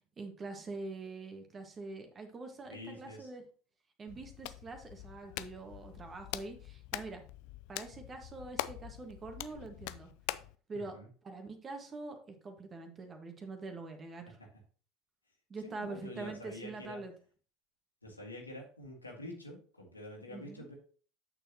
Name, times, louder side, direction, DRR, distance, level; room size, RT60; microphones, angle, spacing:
voice 1, 0.0-3.4 4.0-7.2 7.7-10.1 10.7-11.0 11.2-14.4 15.5-17.1 20.3-20.7, right 3 dB, 25° right, 5 dB, 1.7 m, -44 dB
voice 2, 2.7-3.3 10.7-11.1 15.6-17.0 18.0-20.7, left 1 dB, 90° left, -1 dB, 2.1 m, -47 dB
Hands, 4.1-10.6, left 16 dB, 60° left, 0.4 m, -44 dB
8.7 x 6.7 x 3.0 m, 0.41 s
figure-of-eight pair, 70°, 0 cm